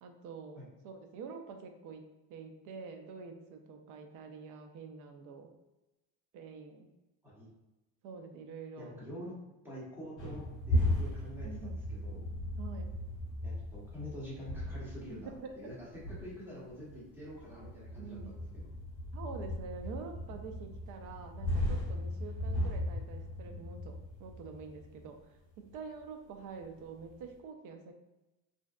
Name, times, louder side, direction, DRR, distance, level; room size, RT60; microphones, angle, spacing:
voice 1, 0.0-5.5 6.3-6.9 8.0-9.2 11.4-11.8 12.6-12.9 15.1-15.5 18.0-18.4 19.1-27.9, right 5 dB, 60° right, 5 dB, 0.5 m, -47 dB
voice 2, 8.8-9.3 9.6-12.2 13.4-18.7, equal, 5° right, -7 dB, 0.9 m, -47 dB
sound 1, 10.2-25.2 25.5-25.7 26.5-27.1, left 1 dB, 35° left, 1.0 m, -37 dB
2.6 x 2.1 x 2.3 m, 1.0 s
cardioid pair, 125°, 35 cm